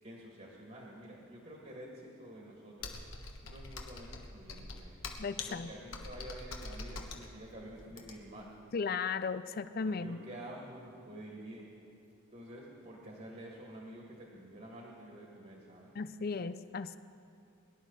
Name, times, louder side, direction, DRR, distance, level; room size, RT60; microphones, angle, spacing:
voice 1, 0.0-3.0 3.4-5.0 5.5-8.5 9.8-11.7 12.3-15.9, right 1 dB, 40° right, -2 dB, 2.1 m, -49 dB
Computer keyboard, 2.8-8.4, left 3 dB, 65° left, 1.3 m, -44 dB
voice 2, 5.2-5.7 8.7-10.2 15.9-17.0, left 5 dB, 45° left, 13 dB, 0.4 m, -36 dB
22.5 x 11.0 x 4.1 m, 2.6 s
head